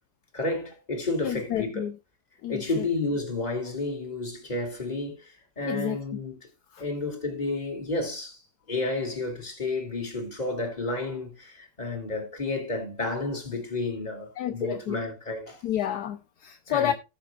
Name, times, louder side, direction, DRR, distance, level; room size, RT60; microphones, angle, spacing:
voice 1, 0.3-1.9 2.5-6.3 6.8-8.4 8.7-15.6 16.7-16.9, left 2 dB, 25° left, 2.6 m, -31 dB
voice 2, 1.2-1.9 2.4-2.8 5.6-6.0 6.7-6.8 14.4-14.9 15.6-16.9, left 10 dB, 70° left, 1.1 m, -30 dB
18.5 x 6.8 x 2.3 m
omnidirectional pair, 1.9 m